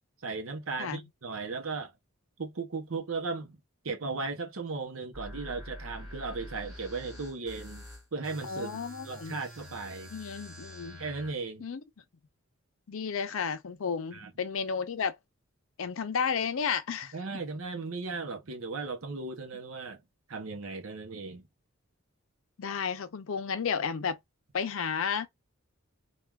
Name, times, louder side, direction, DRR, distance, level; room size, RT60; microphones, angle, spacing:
voice 1, 0.2-1.9 2.4-3.6 3.8-7.9 8.1-8.8 9.0-10.1 11.0-11.6 14.1-14.3 17.1-20.0 20.3-21.5, right 4 dB, 75° right, 0.7 m, -36 dB
sound 1, 5.1-11.3, left 1 dB, ahead, 1.9 m, -46 dB
voice 2, 8.4-9.4 10.1-11.0 11.6-11.8 12.9-15.2 15.8-17.1 22.6-24.2 24.5-25.3, left 6 dB, 70° left, 0.5 m, -32 dB
3.3 x 2.3 x 2.3 m
head